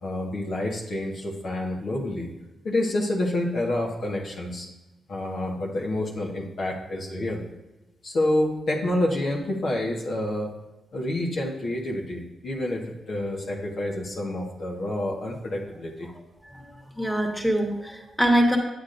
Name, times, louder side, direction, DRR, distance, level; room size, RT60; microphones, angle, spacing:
voice 1, 0.0-2.3 2.6-4.7 5.1-7.5 8.0-10.5 10.9-16.1, left 1 dB, 65° left, -1 dB, 1.6 m, -28 dB
voice 2, 16.4-18.6, right 1 dB, ahead, 1 dB, 1.8 m, -24 dB
8.4 x 8.1 x 2.6 m, 1.0 s
supercardioid pair, 50°, 0 cm